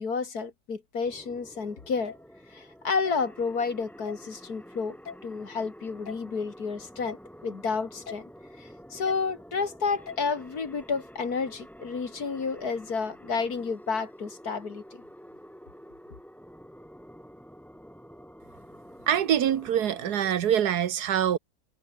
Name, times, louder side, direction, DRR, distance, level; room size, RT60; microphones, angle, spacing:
voice 1, 0.0-2.1 2.5-5.0 5.2-7.2 7.4-8.2 8.6-15.0, left 5 dB, 75° left, 3.0 m, -31 dB
sound 1, 1.0-20.3, equal, ahead, 3.3 m, -49 dB
sound 2, 2.1-2.2 3.1-3.2 4.1-4.2 5.1-5.2 6.1-6.2 7.1-7.2 8.1-8.2 9.1-9.2 10.1-10.2, left 6 dB, 55° left, 1.7 m, -40 dB
voice 2, 19.1-21.4, right 10 dB, 85° right, 1.6 m, -24 dB
omnidirectional pair, 1.6 m